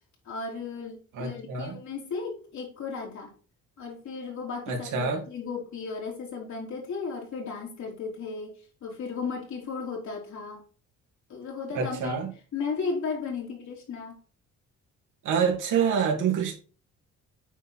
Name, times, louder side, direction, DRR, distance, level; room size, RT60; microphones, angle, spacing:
voice 1, 0.2-3.3 3.8-10.6 11.3-12.2 12.5-14.2, left 4 dB, 70° left, -1 dB, 3.8 m, -35 dB
voice 2, 1.1-1.8 4.7-5.2 11.7-12.3 15.2-16.5, right 6 dB, 85° right, 1 dB, 2.3 m, -27 dB
8.9 x 4.5 x 4.3 m, 0.38 s
cardioid pair, 90°, 30 cm